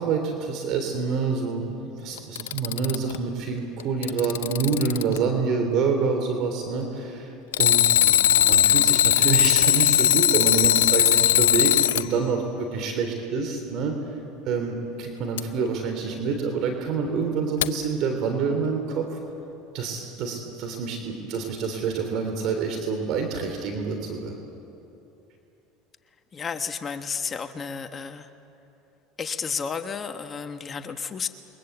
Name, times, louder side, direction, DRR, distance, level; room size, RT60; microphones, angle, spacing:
voice 1, 0.0-7.3 7.6-13.9 14.5-19.2 19.7-24.4, right 5 dB, 60° right, 4 dB, 3.5 m, -27 dB
Alarm, 2.2-3.2 3.8-5.2 7.5-12.1 15.4-15.5 17.6-17.7, left 11 dB, 90° left, 0.6 m, -19 dB
voice 2, 26.3-28.3 29.2-31.3, left 6 dB, 30° left, 8 dB, 1.3 m, -32 dB
28.0 x 23.5 x 8.1 m, 2.9 s
supercardioid pair, 95°, 0 cm